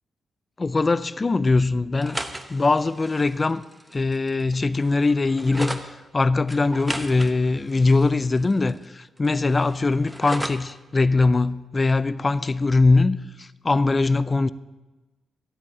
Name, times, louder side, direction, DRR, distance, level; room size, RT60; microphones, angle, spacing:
voice 1, 0.6-2.2 2.5-3.6 3.9-14.5, left 3 dB, 25° left, 0.4 m, -21 dB
sound 1, 1.9-5.9 6.5-8.9 9.2-10.7, right 1 dB, 5° right, 0.9 m, -36 dB
13.0 x 8.4 x 8.5 m
cardioid pair, 120°, 0 cm